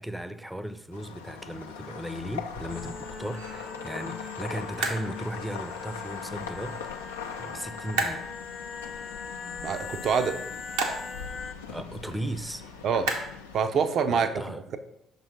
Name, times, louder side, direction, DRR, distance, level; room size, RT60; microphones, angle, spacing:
voice 1, 0.0-7.1 7.4-8.3 11.7-12.7 14.1-14.6, right 1 dB, 5° right, 0.5 m, -36 dB
sound 1, 0.9-13.6, left 6 dB, 90° left, 0.4 m, -41 dB
sound 2, 0.9-14.1, right 3 dB, 80° right, 0.9 m, -39 dB
sound 3, 2.7-11.5, left 5 dB, 35° left, 0.6 m, -41 dB
voice 2, 9.6-10.4 12.8-13.1 13.5-14.8, right 6 dB, 55° right, 0.6 m, -26 dB
5.7 x 4.0 x 5.2 m
hypercardioid pair, 55°, 0 cm